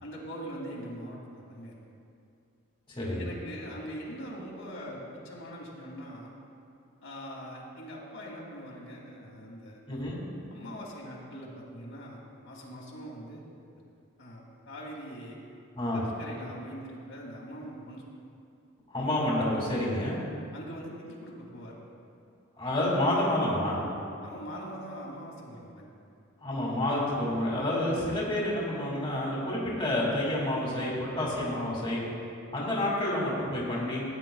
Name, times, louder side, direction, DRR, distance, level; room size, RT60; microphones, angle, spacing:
voice 1, 0.0-1.8 3.2-6.3 7.0-9.8 10.5-13.5 14.2-15.4 15.9-18.0 20.5-21.8 24.2-25.9, equal, 70° left, -4 dB, 2.2 m, -42 dB
voice 2, 9.9-10.2 15.7-16.0 18.9-20.2 22.6-23.8 26.4-32.0 32.5-34.0, left 1 dB, 25° left, -5 dB, 2.2 m, -29 dB
17.0 x 10.0 x 2.3 m, 2.5 s
head